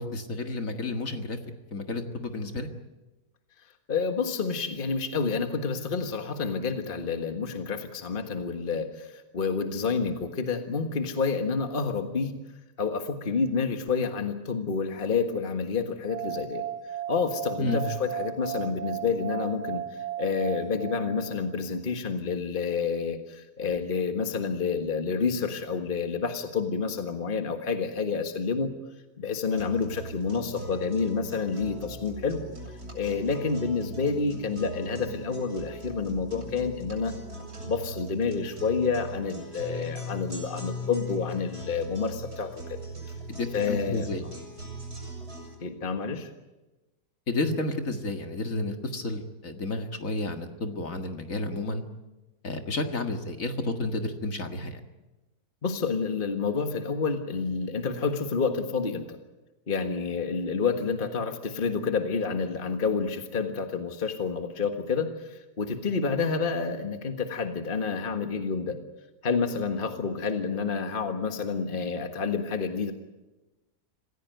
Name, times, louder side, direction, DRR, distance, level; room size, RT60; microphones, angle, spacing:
voice 1, 0.0-1.4 1.7-2.7 17.6-17.8 43.3-44.3 47.3-51.8 52.4-54.8, left 2 dB, 55° left, 5 dB, 2.2 m, -31 dB
voice 2, 3.9-12.3 12.8-16.6 17.1-19.8 20.2-28.7 29.2-32.4 32.9-37.1 37.6-42.8 43.5-44.4 45.6-46.3 55.6-59.2 59.7-68.8 69.2-72.9, left 5 dB, 35° left, 6 dB, 1.7 m, -29 dB
sound 1, 16.1-21.6, right 10 dB, 85° right, 2.2 m, -35 dB
sound 2, 29.5-45.5, equal, 70° right, 7.1 m, -39 dB
26.5 x 16.0 x 9.3 m, 1.1 s
omnidirectional pair, 1.7 m